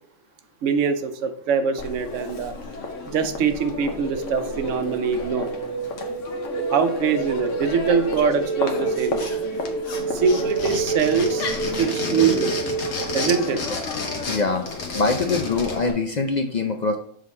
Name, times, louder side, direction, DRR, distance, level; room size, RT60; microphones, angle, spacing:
voice 1, 0.6-2.5 3.1-5.5 6.7-9.3 10.1-11.5 11.8-12.6 13.1-13.6, right 6 dB, 85° right, 9 dB, 1.0 m, -23 dB
Crowd, 1.8-15.9, left 3 dB, 80° left, 1.2 m, -32 dB
sound 1, 3.7-13.6, right 4 dB, 10° left, 1.7 m, -29 dB
sound 2, 8.9-9.6 9.8-15.8, left 3 dB, 65° left, 1.4 m, -32 dB
voice 2, 14.3-14.6 14.9-17.0, left 3 dB, 50° left, 4 dB, 0.5 m, -23 dB
6.4 x 4.0 x 4.2 m, 0.62 s
omnidirectional pair, 1.3 m